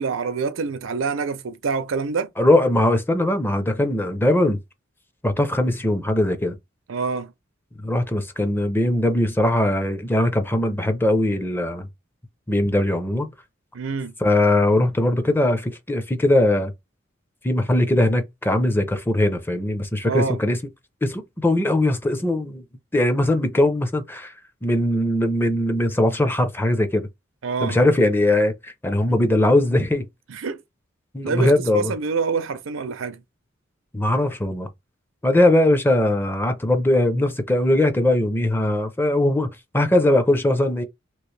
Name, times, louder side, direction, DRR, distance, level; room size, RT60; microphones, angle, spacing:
voice 1, 0.0-2.3 6.9-7.3 13.7-14.1 20.0-20.4 27.4-27.8 30.3-30.6 31.2-33.2, right 5 dB, 85° right, 0.5 m, -26 dB
voice 2, 2.4-4.6 5.2-6.6 7.8-11.9 12.5-13.3 14.2-16.7 17.4-20.6 21.0-22.6 22.9-24.3 24.6-27.1 27.6-30.1 31.1-31.9 33.9-34.7 35.2-40.8, left 1 dB, 10° left, 0.5 m, -20 dB
2.9 x 2.5 x 3.2 m
head